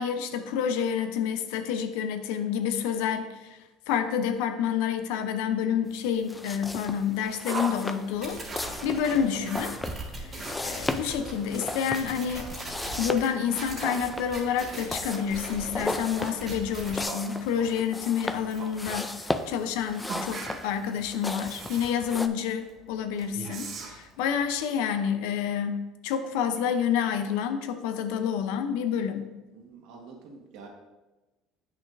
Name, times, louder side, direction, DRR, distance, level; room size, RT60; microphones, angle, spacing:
voice 1, 0.0-3.6 3.9-9.8 10.2-12.5 13.0-19.1 19.5-29.4, left 8 dB, 85° left, 9 dB, 0.6 m, -29 dB
sound 1, 6.2-22.3, left 2 dB, 10° left, 0.4 m, -36 dB
Yell, 7.5-24.6, right 5 dB, 40° right, 0.9 m, -44 dB
sound 2, 8.2-17.0, right 2 dB, 20° right, 1.7 m, -39 dB
voice 2, 29.5-30.7, right 4 dB, 70° right, 1 dB, 1.6 m, -48 dB
8.4 x 6.1 x 2.6 m, 1.1 s
cardioid pair, 135°, 0 cm